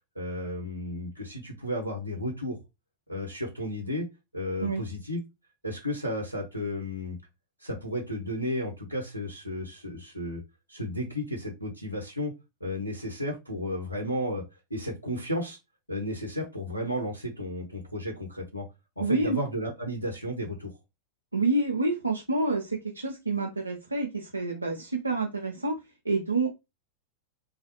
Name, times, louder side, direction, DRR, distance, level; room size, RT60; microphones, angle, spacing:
voice 1, 0.1-2.6 3.1-4.1 4.3-5.2 5.6-7.2 7.6-10.4 10.7-12.3 12.6-14.4 14.7-15.6 15.9-18.7 19.0-20.8, left 1 dB, 90° left, -2 dB, 0.8 m, -33 dB
voice 2, 19.0-19.4 21.3-26.5, right 3 dB, 85° right, 0 dB, 0.5 m, -28 dB
3.2 x 2.4 x 2.9 m, 0.23 s
figure-of-eight pair, 90°, 0 cm